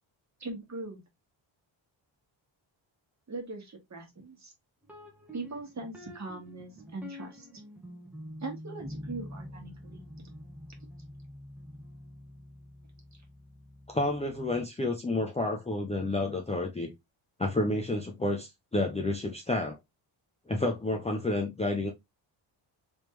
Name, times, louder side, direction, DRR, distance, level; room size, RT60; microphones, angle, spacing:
voice 1, 0.4-1.0 3.3-4.5 5.3-7.5 8.4-10.0, right 3 dB, 35° right, 1.7 m, -40 dB
sound 1, 4.8-14.6, left 1 dB, 5° right, 1.0 m, -46 dB
voice 2, 13.9-16.9 17.4-19.8 20.5-21.9, left 2 dB, 15° left, 0.6 m, -30 dB
3.5 x 3.2 x 3.1 m
cardioid pair, 115°, 48 cm